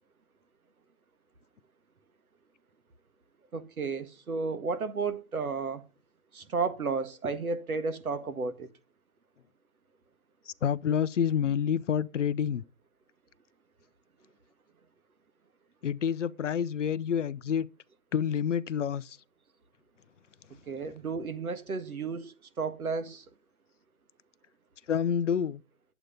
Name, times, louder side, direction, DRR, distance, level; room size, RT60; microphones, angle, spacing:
voice 1, 3.5-5.8 6.3-8.7 20.7-23.2, right 4 dB, 85° right, 1.9 m, -33 dB
voice 2, 10.5-12.6 15.8-17.7 18.1-19.2 24.9-25.6, left 8 dB, 60° left, 0.7 m, -28 dB
11.0 x 8.1 x 5.2 m
hypercardioid pair, 160°, 42 cm